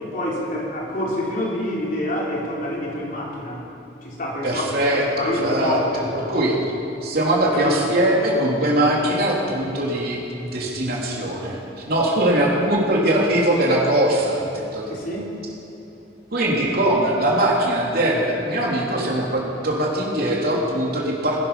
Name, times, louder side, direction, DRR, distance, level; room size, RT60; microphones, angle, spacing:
voice 1, 0.0-3.6 4.0-6.1 7.5-7.8 14.9-15.3, left 1 dB, 50° left, -3 dB, 3.4 m, -27 dB
voice 2, 4.4-6.6 7.0-11.6 11.9-14.9 16.3-21.4, right 1 dB, 60° right, -3 dB, 3.4 m, -21 dB
20.0 x 12.0 x 5.8 m, 2.9 s
head